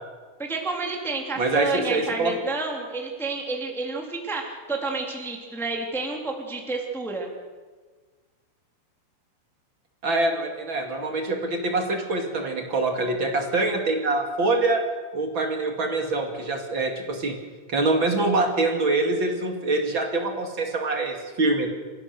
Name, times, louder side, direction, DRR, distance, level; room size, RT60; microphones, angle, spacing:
voice 1, 0.4-7.3, right 3 dB, ahead, 1 dB, 2.2 m, -30 dB
voice 2, 1.4-2.3 10.0-14.8 15.1-17.4 17.7-21.7, right 2 dB, 40° right, 3 dB, 1.9 m, -25 dB
30.0 x 16.5 x 6.8 m, 1.4 s
omnidirectional pair, 5.8 m